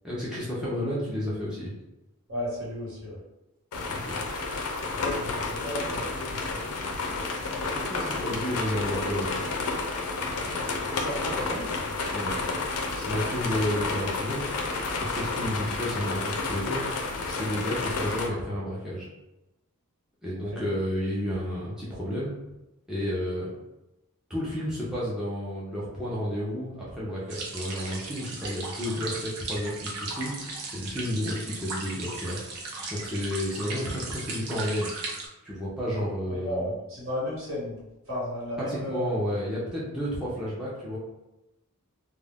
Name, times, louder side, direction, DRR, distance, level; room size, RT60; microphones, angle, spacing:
voice 1, 0.0-1.7 3.9-4.2 7.6-9.3 12.1-12.4 12.9-14.4 15.0-16.8 17.3-19.1 20.2-22.3 22.9-23.6 24.3-30.3 30.7-32.4 32.9-34.9 35.4-36.7 38.7-41.0, equal, 5° right, -8 dB, 0.5 m, -31 dB
voice 2, 2.3-3.2 5.0-6.8 10.7-11.9 20.5-20.7 36.0-37.7 38.1-39.2, equal, 60° right, -6 dB, 1.2 m, -34 dB
sound 1, 3.7-18.3, left 3 dB, 80° left, 0.5 m, -31 dB
sound 2, 27.3-35.3, right 3 dB, 90° right, 0.6 m, -37 dB
2.3 x 2.1 x 3.4 m, 0.96 s
head